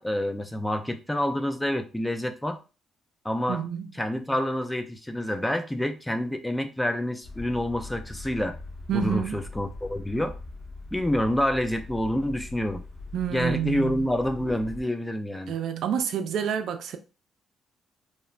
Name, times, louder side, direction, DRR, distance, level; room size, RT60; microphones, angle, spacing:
voice 1, 0.0-2.6 3.2-3.6 4.0-8.6 8.9-10.3 10.9-12.8 13.3-15.5, left 1 dB, 10° left, 0.4 m, -28 dB
voice 2, 3.5-3.9 8.9-9.3 13.1-14.1 15.5-17.0, right 8 dB, 75° right, 0.3 m, -28 dB
sound 1, 7.2-14.8, left 3 dB, 75° left, 1.0 m, -41 dB
3.1 x 2.1 x 2.4 m
cardioid pair, 90°, 0 cm